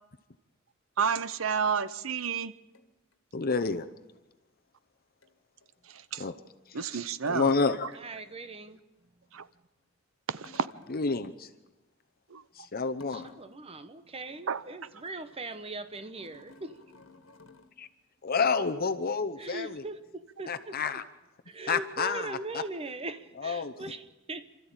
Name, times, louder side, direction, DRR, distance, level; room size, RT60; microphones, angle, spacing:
voice 1, 1.0-2.5 5.9-6.0 6.7-7.6 9.3-9.5 10.3-10.7 12.3-12.4 14.5-14.6, right 6 dB, 85° right, 0.8 m, -30 dB
sound 1, 1.5-1.7 2.7-3.1 5.2-5.4 5.6-5.7 7.9-8.4 10.4-11.2 12.9-13.7 14.0-17.7, left 4 dB, 75° left, 1.8 m, -56 dB
voice 2, 3.3-3.9 6.2-6.3 7.3-7.9 10.9-11.5 12.5-13.3 17.8-17.9 18.2-19.8 20.5-21.0 21.7-22.3 23.4-23.7, left 4 dB, 50° left, 0.8 m, -29 dB
voice 3, 7.9-9.7 12.6-12.7 13.1-16.8 19.4-21.0 21.5-24.5, right 2 dB, 30° right, 1.1 m, -41 dB
28.0 x 13.5 x 8.9 m
head